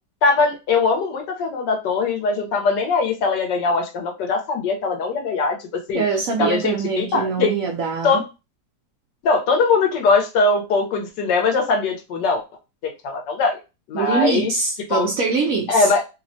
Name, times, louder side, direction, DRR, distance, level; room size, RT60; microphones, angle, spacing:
voice 1, 0.2-6.0 6.4-7.5 8.0-8.2 9.2-12.4 12.8-13.6 13.9-14.5 14.9-15.1 15.7-16.0, left 4 dB, 90° left, 1.4 m, -21 dB
voice 2, 5.9-8.2 13.9-15.9, right 5 dB, 70° right, 0.8 m, -23 dB
3.3 x 2.1 x 2.6 m
omnidirectional pair, 1.8 m